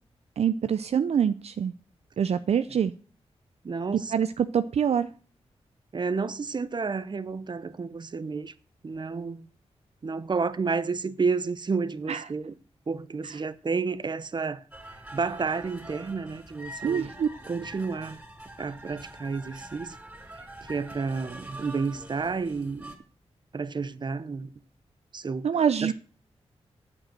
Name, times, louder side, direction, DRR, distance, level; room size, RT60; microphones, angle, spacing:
voice 1, 0.4-1.7 2.2-2.9 4.1-5.1 12.1-12.2 16.8-17.3 25.4-25.9, right 8 dB, 65° right, 0.5 m, -25 dB
voice 2, 3.6-4.1 5.9-8.5 8.8-9.5 10.0-12.5 12.9-14.6 15.1-17.1 17.5-18.2 18.6-20.0 20.4-22.9 23.5-24.5 25.1-25.5 25.8-25.9, right 4 dB, 40° right, 0.8 m, -31 dB
sound 1, 14.7-23.0, right 1 dB, 15° right, 3.3 m, -44 dB
9.0 x 7.7 x 7.7 m
cardioid pair, 80°, 11 cm